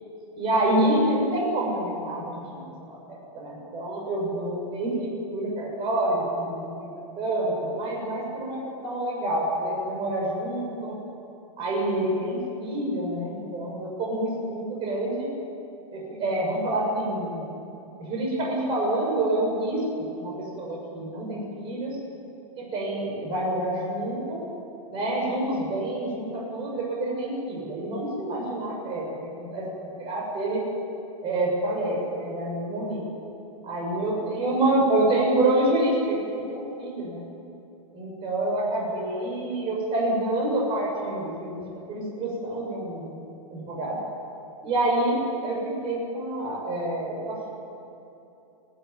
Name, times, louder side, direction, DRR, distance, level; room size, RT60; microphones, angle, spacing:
voice 1, 0.4-6.9 7.2-10.9 11.6-15.3 15.9-17.6 18.0-22.0 22.6-24.4 24.9-30.6 31.2-33.0 33.7-37.2 37.9-41.6 41.9-43.1 43.5-44.0 44.6-47.5, right 1 dB, 30° right, -2 dB, 6.9 m, -27 dB
28.5 x 11.5 x 9.4 m, 2.9 s
hypercardioid pair, 145°, 19 cm